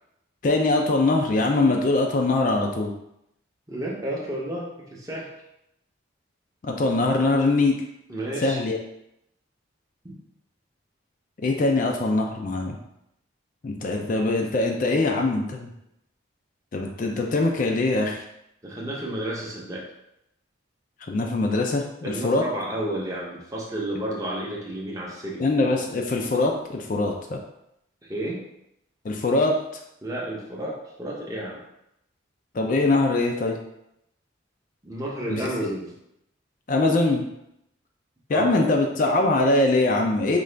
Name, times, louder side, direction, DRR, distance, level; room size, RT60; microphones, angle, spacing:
voice 1, 0.4-2.9 6.6-7.8 8.4-8.8 11.4-12.8 13.6-15.7 16.7-18.2 21.1-22.4 25.4-27.4 29.0-29.6 32.5-33.6 35.3-35.5 36.7-37.3 38.3-40.4, left 2 dB, 40° left, 2 dB, 0.4 m, -22 dB
voice 2, 3.7-5.3 8.1-8.6 10.0-10.2 18.6-19.8 22.0-25.4 28.0-28.4 30.0-31.6 34.8-35.9 38.3-38.6, right 1 dB, 15° right, -4 dB, 0.6 m, -31 dB
3.8 x 2.3 x 3.2 m, 0.81 s
head